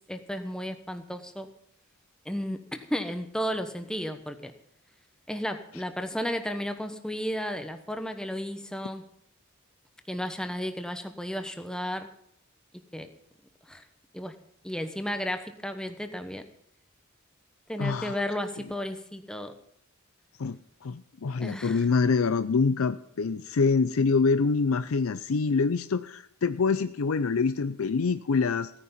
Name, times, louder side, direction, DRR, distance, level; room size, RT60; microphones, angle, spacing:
voice 1, 0.1-1.5 2.2-4.5 5.3-9.0 10.1-12.1 12.9-13.1 13.7-13.8 14.1-14.3 14.6-16.4 17.7-19.5 21.4-21.8, equal, 5° left, 7 dB, 1.0 m, -33 dB
voice 2, 17.8-18.2 20.4-28.7, left 4 dB, 80° left, 12 dB, 0.5 m, -25 dB
16.5 x 9.8 x 5.6 m, 0.68 s
head